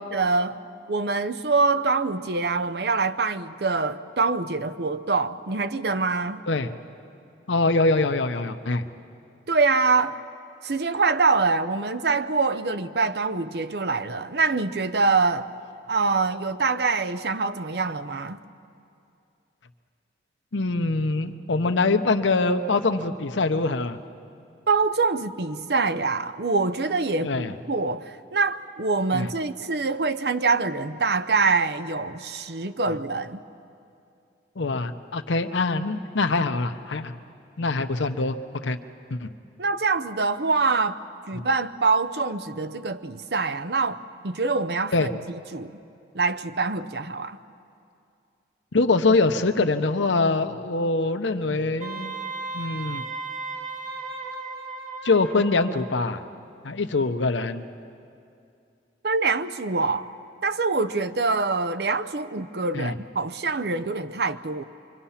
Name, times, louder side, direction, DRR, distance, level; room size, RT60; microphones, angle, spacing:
voice 1, 0.1-0.6 0.9-6.4 9.5-10.2 10.6-15.5 15.9-18.4 24.7-33.4 39.6-41.0 41.3-44.0 44.2-45.7 46.1-47.4 59.0-60.1 60.4-64.6, right 4 dB, 60° right, 0.7 m, -25 dB
voice 2, 7.5-8.8 20.5-24.0 27.2-27.5 29.1-29.3 34.6-37.1 37.6-38.8 39.1-39.3 44.9-45.1 48.7-52.1 52.5-53.0 55.0-56.2 56.6-57.6 62.7-62.9, left 3 dB, 85° left, 0.9 m, -24 dB
Wind instrument woodwind instrument, 51.8-56.0, right 4 dB, 40° right, 2.0 m, -35 dB
26.5 x 23.5 x 5.8 m
head